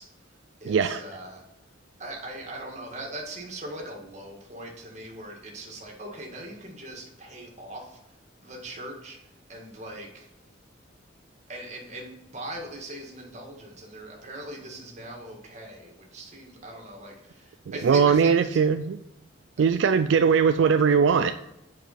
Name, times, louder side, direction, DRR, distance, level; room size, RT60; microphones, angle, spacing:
voice 1, 0.0-1.7 2.0-8.2 8.4-10.3 11.5-18.7, right 1 dB, 35° right, 0 dB, 1.8 m, -40 dB
voice 2, 0.7-1.0 17.8-19.0 19.6-21.4, right 6 dB, 70° right, 9 dB, 0.3 m, -20 dB
8.0 x 4.9 x 4.2 m, 0.87 s
head